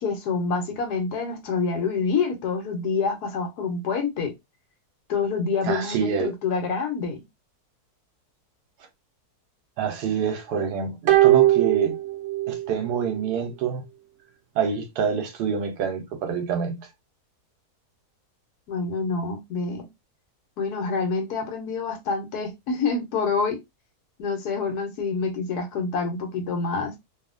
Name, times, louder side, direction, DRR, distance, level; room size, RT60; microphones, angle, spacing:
voice 1, 0.0-4.3 5.1-7.2 18.7-19.9 20.6-23.6 24.2-27.0, left 4 dB, 80° left, 1.4 m, -27 dB
voice 2, 5.6-6.3 9.8-12.0 12.5-13.8 14.5-16.9, right 7 dB, 85° right, 1.3 m, -26 dB
sound 1, 11.1-12.7 13.0-13.1, right 15 dB, 70° right, 0.9 m, -19 dB
2.7 x 2.7 x 2.5 m
omnidirectional pair, 1.7 m